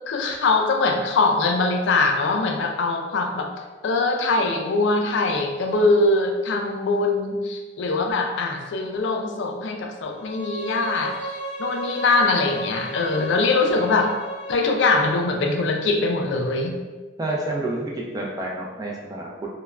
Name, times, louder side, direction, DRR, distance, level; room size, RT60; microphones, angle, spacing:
voice 1, 0.1-3.5 3.8-14.1 14.5-16.7, left 3 dB, 75° left, 3 dB, 0.3 m, -22 dB
Bowed string instrument, 10.1-15.3, right 1 dB, 30° left, 1.1 m, -34 dB
voice 2, 17.2-19.3, right 2 dB, 20° right, -2 dB, 0.4 m, -29 dB
3.1 x 2.1 x 2.3 m, 1.3 s
head